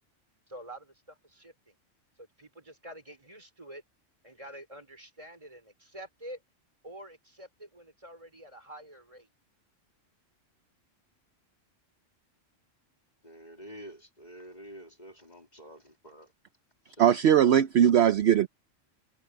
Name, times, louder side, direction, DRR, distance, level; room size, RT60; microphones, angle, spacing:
voice 1, 0.5-1.7 2.2-3.8 4.2-6.4 6.8-9.3, right 1 dB, 25° right, 4.7 m, -47 dB
voice 2, 13.2-16.3 16.9-17.1, right 1 dB, 35° left, 2.9 m, -48 dB
voice 3, 17.0-18.5, right 9 dB, 65° right, 0.9 m, -20 dB
omnidirectional pair, 1.3 m